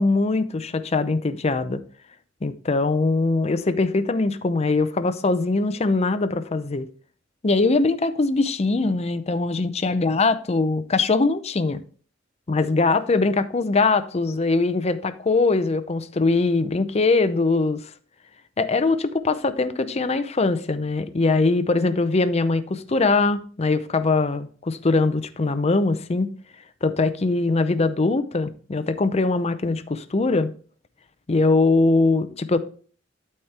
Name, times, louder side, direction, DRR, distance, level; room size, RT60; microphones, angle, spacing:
voice 1, 0.0-1.8 2.4-6.9 7.4-11.8 12.5-17.8 18.6-26.3 26.8-30.5 31.3-32.6, left 3 dB, 35° left, 0.6 m, -22 dB
12.0 x 4.4 x 3.4 m
head